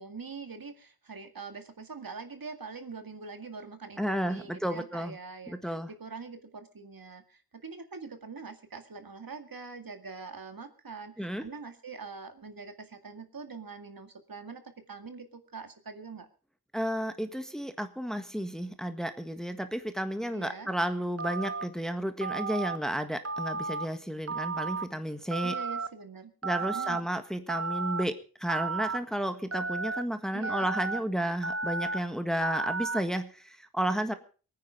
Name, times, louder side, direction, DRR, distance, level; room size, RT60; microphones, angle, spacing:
voice 1, 0.0-14.6 14.9-16.3 20.3-20.7 25.4-26.3 26.6-27.1 30.3-30.7, right 4 dB, 65° right, 7 dB, 2.1 m, -44 dB
voice 2, 4.0-5.2 5.5-5.9 11.2-11.4 16.7-25.5 26.4-34.2, equal, ahead, 8 dB, 1.6 m, -32 dB
Telephone, 21.2-21.6 22.2-22.8 23.2-23.9 24.3-24.8 25.3-25.9 26.4-27.0 27.5-28.0 28.5-29.0 29.5-30.0 30.4-31.0 31.4-32.0 32.4-33.0, right 4 dB, 40° right, 1.0 m, -33 dB
22.5 x 9.7 x 5.1 m, 0.38 s
wide cardioid pair, 70°, 38 cm